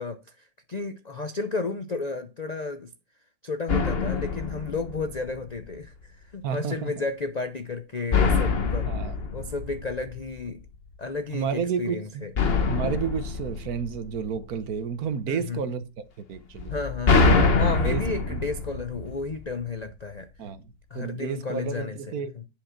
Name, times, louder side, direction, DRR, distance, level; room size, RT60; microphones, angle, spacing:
voice 1, 0.0-2.9 3.4-8.9 9.3-10.6 11.0-12.3 15.3-15.6 16.7-20.3 20.9-22.4, left 3 dB, 85° left, 0.3 m, -33 dB
sound 1, 3.7-5.6 8.1-10.5 12.4-14.6 16.6-19.6, left 4 dB, 40° left, 1.2 m, -25 dB
voice 2, 6.4-6.9 8.9-9.1 11.3-12.2 12.7-15.8 16.3-16.7 17.9-18.4 20.4-20.6 20.9-22.3, right 7 dB, 60° right, 1.3 m, -31 dB
10.5 x 5.3 x 5.8 m
omnidirectional pair, 1.9 m